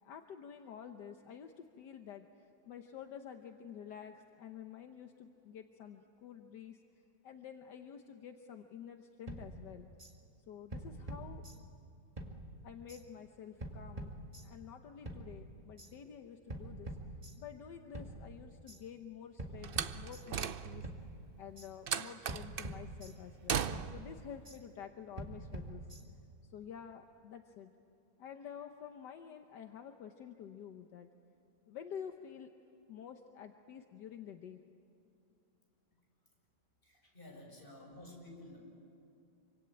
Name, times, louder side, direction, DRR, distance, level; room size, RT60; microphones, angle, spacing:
voice 1, 0.0-6.8 7.2-9.9 10.5-11.5 12.6-14.1 14.4-17.0 17.4-20.9 21.4-25.9 26.4-27.7 28.2-31.1 31.7-32.5 32.9-34.6, left 8 dB, 75° left, 6 dB, 1.6 m, -49 dB
sound 1, 9.3-10.1 10.7-11.9 12.2-13.0 13.6-14.7 15.0-15.9 16.5-17.6 17.9-18.8 19.4-20.6 20.8-21.7 22.3-23.4 23.7-24.6 25.2-26.3, right 1 dB, 20° right, 2.0 m, -46 dB
Slam, 19.6-21.0 21.9-22.8 23.5-24.1, right 7 dB, 65° right, 0.5 m, -37 dB
voice 2, 36.8-38.6, left 1 dB, 30° left, -1 dB, 7.2 m, -52 dB
26.5 x 25.0 x 8.9 m, 2.7 s
omnidirectional pair, 1.9 m